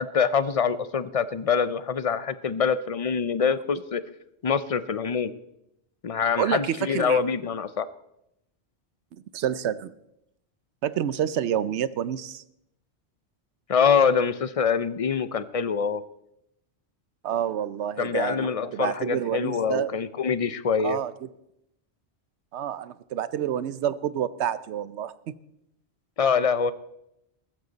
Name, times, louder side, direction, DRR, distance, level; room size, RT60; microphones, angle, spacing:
voice 1, 0.0-4.0 4.4-5.3 6.0-7.9 13.7-16.0 18.0-21.0 26.2-26.7, left 6 dB, 45° left, 15 dB, 0.5 m, -25 dB
voice 2, 6.4-7.2 9.3-9.9 10.8-12.4 17.2-19.9 20.8-21.1 22.5-25.1, right 10 dB, 90° right, 16 dB, 0.9 m, -28 dB
15.0 x 14.0 x 4.0 m, 0.82 s
omnidirectional pair, 1.1 m